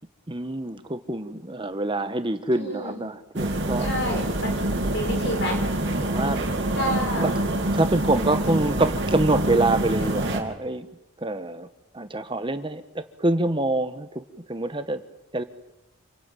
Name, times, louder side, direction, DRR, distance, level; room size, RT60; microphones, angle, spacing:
voice 1, 0.3-3.9 6.0-6.4 7.2-7.3 7.7-10.9 11.2-11.7 11.9-15.0 15.3-15.4, right 2 dB, 25° right, 10 dB, 1.2 m, -26 dB
voice 2, 2.5-3.0 3.8-4.6 4.9-5.6 6.8-7.2, left 1 dB, 55° left, 3 dB, 6.1 m, -29 dB
sound 1, 3.4-10.4, right 1 dB, 55° right, 3.3 m, -26 dB
28.0 x 16.0 x 9.1 m, 0.95 s
head